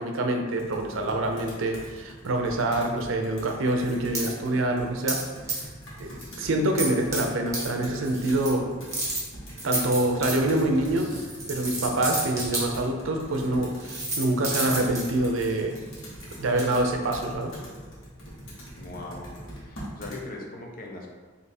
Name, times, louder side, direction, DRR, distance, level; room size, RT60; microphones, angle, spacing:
voice 1, 0.0-5.2 6.0-8.7 9.6-11.1 11.5-15.8 16.4-17.6, right 1 dB, 85° right, 3 dB, 0.5 m, -26 dB
Computer keyboard, 0.6-20.2, equal, 90° left, 1.3 m, -43 dB
sound 1, 3.8-4.3 5.1-5.2 5.5-5.8 6.2-6.3 6.8-7.2 7.5-7.7 8.0-8.5 8.9-12.6 13.4-13.5 13.8-16.8, right 2 dB, 15° right, 1.1 m, -31 dB
voice 2, 18.8-21.1, left 2 dB, 45° left, 0 dB, 0.6 m, -40 dB
3.4 x 2.8 x 4.2 m, 1.4 s
head